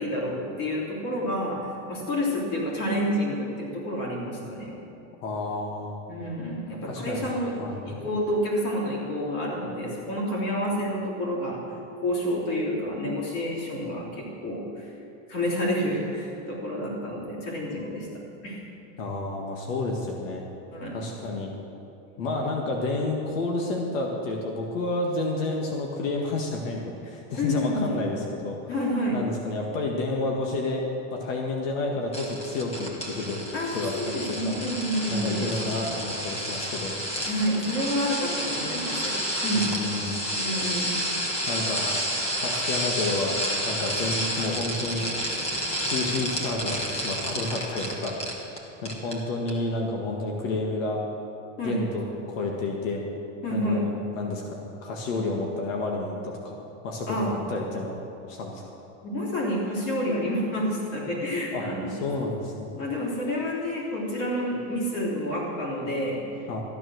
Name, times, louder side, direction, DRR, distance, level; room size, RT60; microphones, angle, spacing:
voice 1, 0.0-4.7 6.1-7.6 7.8-11.6 12.0-14.9 15.3-18.6 20.7-21.0 27.4-27.9 28.7-29.2 33.5-35.6 37.3-39.2 39.4-39.7 40.3-41.0 51.6-51.8 53.4-53.9 57.1-57.3 59.0-61.9 62.8-66.6, equal, 40° left, -4 dB, 3.4 m, -29 dB
voice 2, 5.2-6.0 6.8-7.2 7.6-8.0 19.0-20.4 20.9-21.5 22.2-28.6 29.1-30.8 31.1-33.4 33.7-34.6 35.1-36.9 39.6-40.3 41.5-42.1 42.4-43.3 43.7-45.1 45.8-48.2 48.8-51.0 51.6-53.0 53.5-56.6 56.8-58.0 58.3-58.8 61.5-61.6 61.9-62.8 66.5-66.6, left 2 dB, 85° left, 0 dB, 1.8 m, -30 dB
sound 1, 32.1-48.6 48.9-49.2 49.5-49.6, equal, 15° left, 1.5 m, -30 dB
14.0 x 9.6 x 6.4 m, 2.8 s
supercardioid pair, 165°, 38 cm